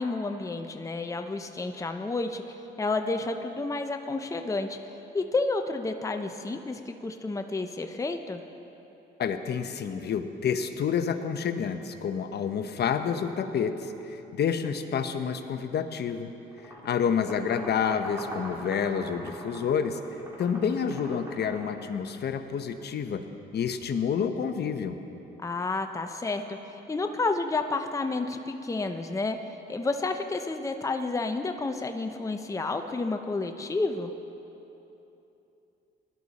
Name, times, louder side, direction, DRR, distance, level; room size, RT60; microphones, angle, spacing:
voice 1, 0.0-8.4 25.4-34.1, left 3 dB, 15° left, 6 dB, 0.7 m, -31 dB
voice 2, 9.2-16.3 16.6-20.0 20.4-23.2 23.5-25.0, left 7 dB, 55° left, 8 dB, 0.9 m, -29 dB
sound 1, 16.5-22.2, right 1 dB, 15° right, 3.5 m, -42 dB
18.0 x 11.5 x 4.2 m, 3.0 s
cardioid pair, 90°, 20 cm